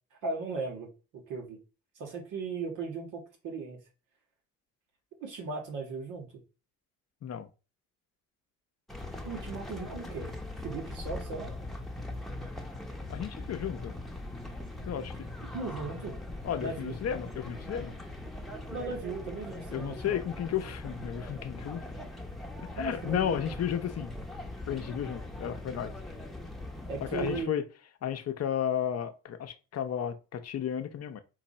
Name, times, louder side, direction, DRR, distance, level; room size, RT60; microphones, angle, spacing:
voice 1, 0.2-0.9 1.3-1.6 2.0-3.8 5.2-6.3 9.2-10.3 10.6-11.5 15.4-16.2 16.6-16.9 18.7-20.2 22.8-23.5 26.9-27.6, right 4 dB, 85° right, 1.6 m, -37 dB
sound 1, 8.9-27.4, left 1 dB, ahead, 0.9 m, -41 dB
voice 2, 13.1-14.0 14.8-15.3 16.4-18.0 19.7-22.0 22.8-24.1 24.7-25.9 27.0-27.6 28.0-31.2, left 9 dB, 55° left, 0.7 m, -33 dB
4.6 x 2.5 x 4.2 m
cardioid pair, 90°, 30 cm